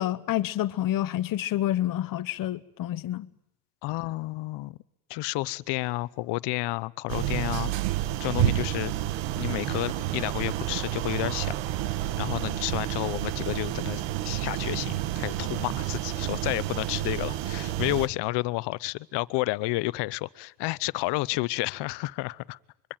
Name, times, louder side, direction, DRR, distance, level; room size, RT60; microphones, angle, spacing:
voice 1, 0.0-3.3, left 13 dB, 45° left, 1.2 m, -28 dB
voice 2, 3.8-4.8 5.1-7.7 8.2-11.6 12.2-22.6, left 21 dB, 60° left, 1.0 m, -31 dB
sound 1, 7.1-18.1, right 14 dB, 65° right, 1.6 m, -30 dB
25.0 x 24.0 x 9.0 m
supercardioid pair, 115°, 48 cm